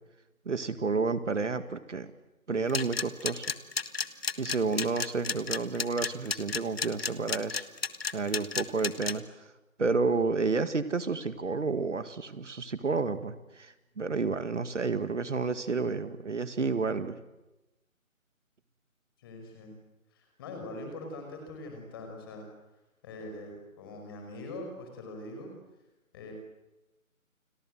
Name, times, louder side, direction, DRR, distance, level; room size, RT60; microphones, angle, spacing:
voice 1, 0.5-2.1 2.5-3.5 4.4-7.7 8.1-9.5 9.8-17.2, right 4 dB, 60° right, 11 dB, 2.0 m, -30 dB
sound 1, 2.7-9.1, left 5 dB, 45° left, 1.5 m, -32 dB
voice 2, 19.2-19.7 20.1-22.4 23.0-25.5 26.1-26.3, left 2 dB, 15° left, 3 dB, 5.3 m, -42 dB
30.0 x 25.5 x 7.8 m, 1.0 s
figure-of-eight pair, 170°, 42 cm